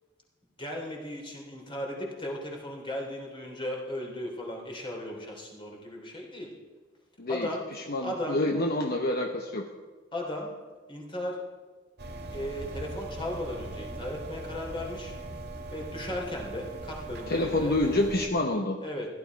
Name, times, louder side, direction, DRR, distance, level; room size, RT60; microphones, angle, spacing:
voice 1, 0.6-6.5 7.3-7.6 8.0-8.4 10.1-10.5 10.9-11.4 12.3-15.1 15.7-17.8 18.8-19.1, left 1 dB, 25° left, 0 dB, 3.2 m, -36 dB
voice 2, 7.2-9.7 17.3-18.8, left 1 dB, 50° left, 3 dB, 0.9 m, -28 dB
sound 1, 12.0-18.3, right 2 dB, 55° right, 1.7 m, -40 dB
15.5 x 12.0 x 4.7 m, 1.3 s
head